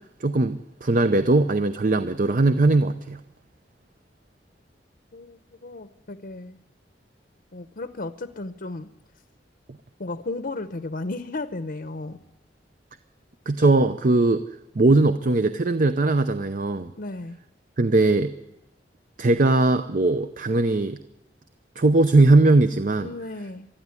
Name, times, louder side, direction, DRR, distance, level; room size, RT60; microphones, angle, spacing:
voice 1, 0.2-3.2 13.5-14.4 14.8-16.9 17.8-18.3 19.2-21.0 21.8-23.1, right 2 dB, 50° right, 10 dB, 0.7 m, -20 dB
voice 2, 5.1-6.6 7.5-8.9 10.0-12.2 17.0-17.4 23.0-23.7, left 2 dB, 55° left, 10 dB, 0.8 m, -34 dB
21.5 x 13.0 x 9.7 m, 0.98 s
head